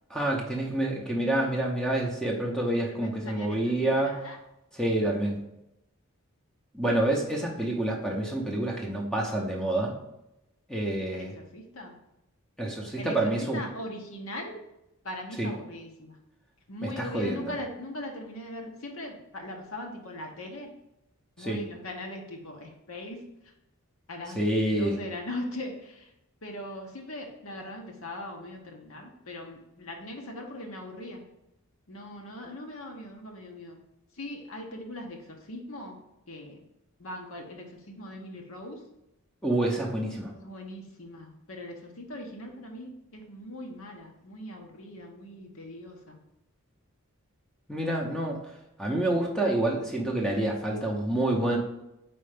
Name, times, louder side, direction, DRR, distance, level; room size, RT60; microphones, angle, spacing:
voice 1, 0.1-4.2 4.7-5.4 6.7-9.9 10.7-11.3 12.6-13.6 15.4-15.5 16.8-17.5 21.4-21.6 24.3-25.0 39.4-40.3 47.7-48.4 48.8-51.6, right 1 dB, 5° left, -1 dB, 0.7 m, -28 dB
voice 2, 2.7-4.4 11.1-11.9 13.0-14.6 15.0-16.1 16.7-20.7 21.4-23.2 24.1-24.4 24.7-26.0 26.4-31.2 31.9-33.8 34.2-35.2 35.5-36.0 36.3-36.6 37.0-38.8 40.3-46.2, left 1 dB, 65° left, 1 dB, 1.0 m, -40 dB
4.4 x 4.3 x 5.1 m, 0.87 s
head